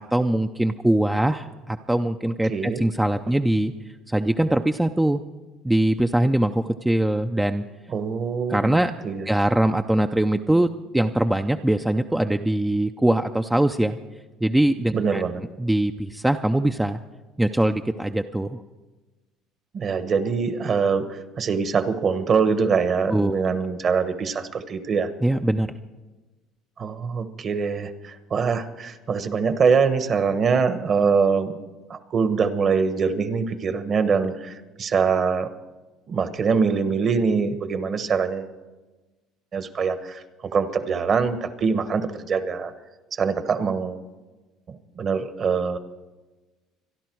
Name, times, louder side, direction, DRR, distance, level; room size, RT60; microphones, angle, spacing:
voice 1, 0.0-3.7 4.1-5.2 5.6-7.6 8.5-8.9 9.3-10.7 10.9-14.0 14.4-15.2 15.6-17.0 17.4-18.6 23.1-23.4 25.2-25.7, right 1 dB, 5° right, 6 dB, 0.5 m, -22 dB
voice 2, 2.5-2.8 7.9-9.3 14.9-15.4 19.7-25.1 26.8-31.6 31.9-35.5 36.1-38.5 39.5-42.7 43.1-44.0 44.7-45.8, right 5 dB, 40° right, 11 dB, 1.1 m, -23 dB
25.5 x 11.0 x 4.6 m, 1.2 s
cardioid pair, 120°, 0 cm